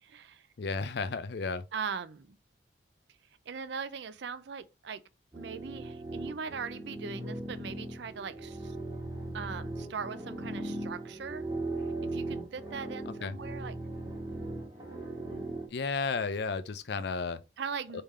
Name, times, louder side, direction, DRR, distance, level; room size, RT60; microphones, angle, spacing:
voice 1, 0.0-0.5 1.7-2.4 3.5-5.0 5.3-8.8 9.3-11.5 12.1-13.7 15.3-15.5 17.6-18.0, right 6 dB, 60° right, 0.5 m, -40 dB
voice 2, 0.6-1.6 13.1-13.4 15.7-17.4 17.9-18.0, left 4 dB, 55° left, 0.4 m, -33 dB
sound 1, 5.3-15.7, right 2 dB, 20° right, 1.3 m, -38 dB
3.7 x 3.4 x 4.1 m
head